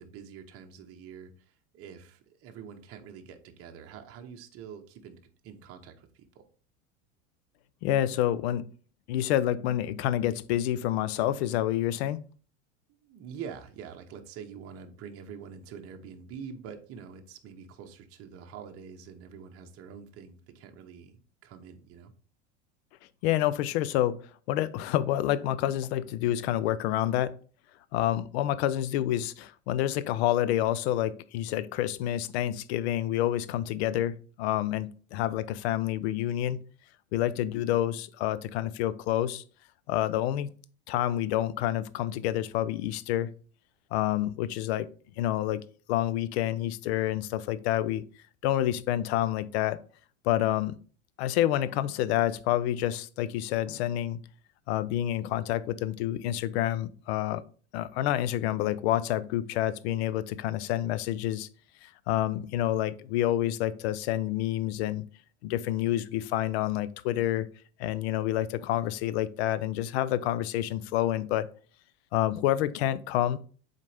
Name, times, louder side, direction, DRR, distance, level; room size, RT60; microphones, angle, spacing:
voice 1, 0.0-6.4 12.9-22.1, right 7 dB, 45° right, 5 dB, 1.0 m, -45 dB
voice 2, 7.8-8.7 9.1-12.2 23.2-27.3 27.9-36.6 37.1-39.4 39.9-40.5 40.9-43.3 43.9-44.9 45.2-45.6 45.9-48.0 48.4-49.8 50.2-50.8 51.2-54.2 54.7-57.4 57.7-61.5 61.8-65.0 65.4-67.5 67.8-71.5 72.1-73.4, left 13 dB, 70° left, 16 dB, 0.6 m, -28 dB
7.3 x 4.1 x 3.4 m, 0.41 s
hypercardioid pair, 105°, 33 cm